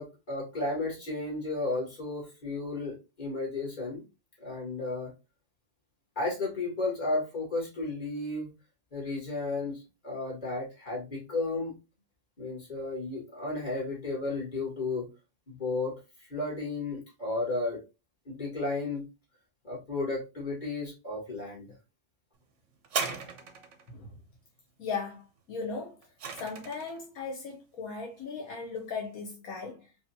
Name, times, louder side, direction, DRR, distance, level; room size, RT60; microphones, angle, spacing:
voice 1, 0.0-4.0 4.4-5.1 6.2-8.5 8.9-11.7 12.4-15.1 15.5-15.9 16.2-17.8 18.3-19.1 19.6-21.7, left 2 dB, 30° left, 2.2 m, -33 dB
sound 1, 22.8-23.9 25.6-27.0 27.8-27.9, right 5 dB, 60° right, 1.0 m, -36 dB
voice 2, 24.8-26.0 26.3-29.9, left 5 dB, 75° left, 1.4 m, -37 dB
5.1 x 2.6 x 2.7 m
omnidirectional pair, 1.5 m